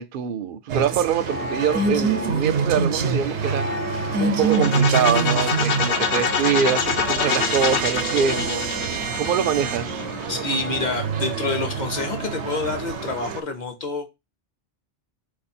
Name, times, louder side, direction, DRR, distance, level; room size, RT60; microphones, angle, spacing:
voice 1, 0.0-3.7 4.2-8.8 9.2-10.1, right 8 dB, 60° right, 0.6 m, -24 dB
sound 1, 0.7-13.4, right 5 dB, 85° right, 0.9 m, -26 dB
sound 2, 1.3-13.2, left 2 dB, 15° left, 0.7 m, -35 dB
sound 3, 4.4-10.2, left 6 dB, 80° left, 1.1 m, -25 dB
voice 2, 10.3-14.1, left 3 dB, 45° left, 1.0 m, -27 dB
4.6 x 2.6 x 4.2 m
omnidirectional pair, 1.2 m